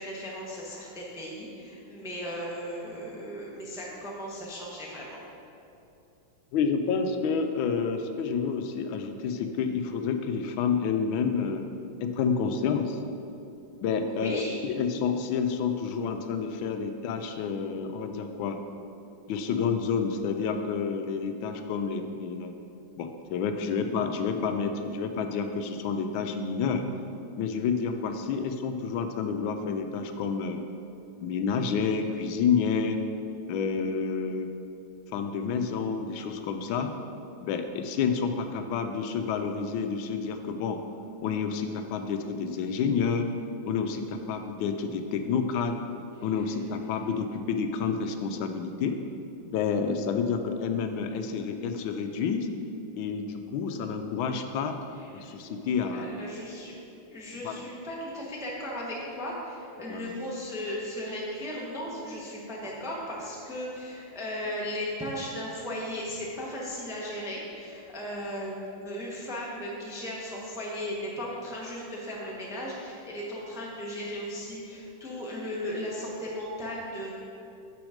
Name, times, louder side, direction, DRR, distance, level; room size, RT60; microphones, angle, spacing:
voice 1, 0.0-5.2 14.1-14.6 28.3-28.5 46.4-46.5 55.0-56.7 57.1-77.1, equal, 5° right, -4 dB, 0.6 m, -36 dB
voice 2, 6.5-11.7 12.0-13.0 13.8-18.6 19.3-22.5 23.0-26.8 27.4-30.6 31.2-33.0 33.5-34.5 35.1-36.9 37.4-40.8 41.2-43.3 43.7-45.8 46.2-49.0 49.5-52.5 53.0-54.8 55.1-56.1 57.4-57.6 59.9-60.1, left 6 dB, 80° left, 6 dB, 1.3 m, -29 dB
7.0 x 6.1 x 5.0 m, 2.7 s
omnidirectional pair, 2.2 m